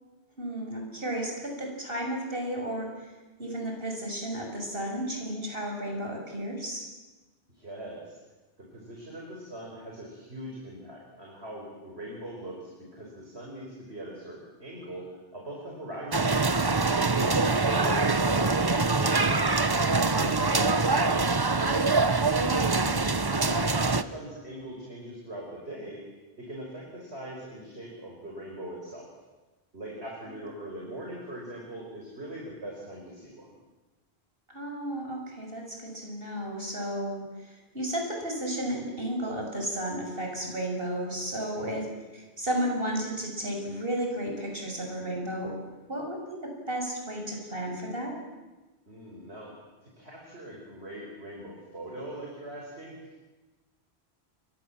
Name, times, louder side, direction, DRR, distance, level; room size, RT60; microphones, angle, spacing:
voice 1, 0.4-2.9 3.4-6.9 22.4-23.0 30.3-30.4 34.5-41.9 42.1-45.5 45.9-48.2, right 1 dB, 60° right, 1 dB, 6.8 m, -33 dB
voice 2, 7.5-8.2 8.6-16.3 16.9-19.5 20.1-21.8 23.3-26.0 26.4-29.1 29.7-33.5 41.5-41.8 48.9-49.6 49.8-53.2, right 1 dB, 80° right, -2 dB, 5.6 m, -41 dB
sound 1, 16.1-24.0, right 3 dB, 25° right, 0.8 m, -24 dB
29.5 x 24.5 x 7.4 m, 1.2 s
omnidirectional pair, 1.1 m